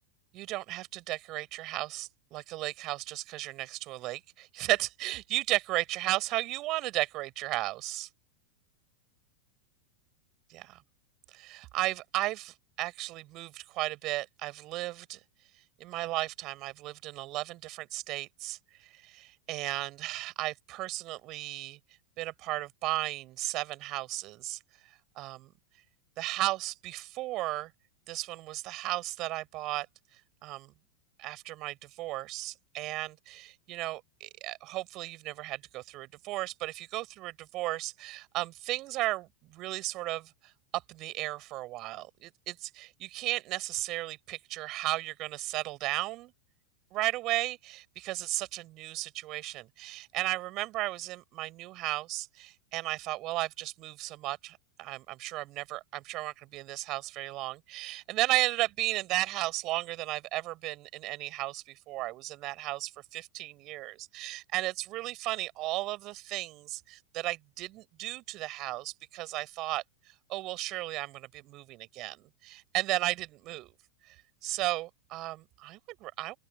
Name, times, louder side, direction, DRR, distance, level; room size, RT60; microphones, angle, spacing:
voice 1, 0.3-8.1 10.5-10.8 11.3-15.2 15.8-21.8 22.2-24.6 25.2-25.5 26.2-27.7 28.1-29.9 30.4-30.7 31.2-46.3 46.9-69.8 70.3-73.7 74.1-74.2 74.4-76.4, right 18 dB, 40° right, 7.8 m, -35 dB
open air
figure-of-eight pair, 90°, 0 cm